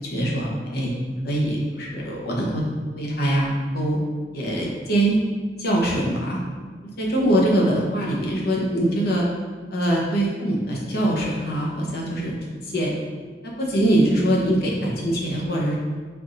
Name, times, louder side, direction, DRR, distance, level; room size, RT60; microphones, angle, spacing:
voice 1, 0.0-0.9 1.2-2.6 3.0-3.5 3.7-4.0 4.3-5.2 5.6-6.4 7.0-9.2 9.7-12.3 12.7-12.9 13.6-15.8, right 1 dB, 60° left, -3 dB, 0.9 m, -23 dB
4.7 x 3.9 x 2.5 m, 1.5 s
head